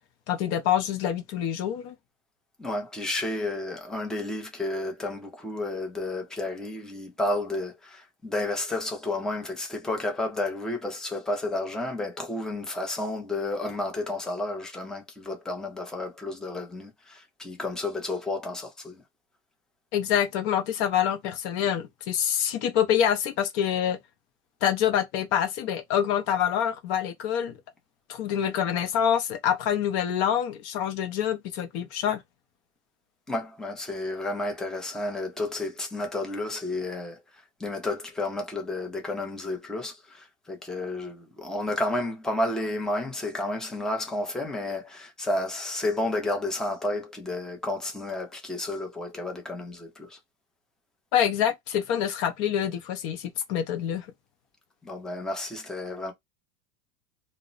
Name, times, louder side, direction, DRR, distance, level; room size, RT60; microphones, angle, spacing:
voice 1, 0.3-1.9 19.9-24.0 24.6-27.5 28.1-32.2 51.1-54.1, left 9 dB, 50° left, 0.6 m, -26 dB
voice 2, 2.6-19.0 33.3-37.2 37.6-50.2 54.8-56.1, left 2 dB, ahead, 0.5 m, -31 dB
2.0 x 2.0 x 3.7 m
supercardioid pair, 145°, 34 cm